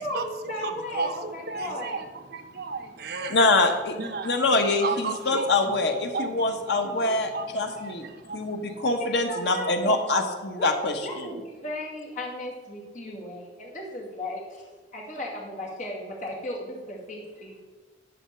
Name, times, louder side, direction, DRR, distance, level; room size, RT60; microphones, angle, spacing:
voice 1, 0.0-2.0 7.0-7.2 9.0-10.0 10.5-10.7 11.0-17.6, left 1 dB, 45° left, -2 dB, 2.4 m, -36 dB
voice 2, 0.6-3.4 4.0-4.4 4.8-8.9, right 4 dB, 65° right, 6 dB, 1.0 m, -34 dB
voice 3, 3.3-4.0 4.2-8.0 8.3-11.3, left 2 dB, 70° left, 5 dB, 1.1 m, -24 dB
11.0 x 4.3 x 6.8 m, 1.3 s
head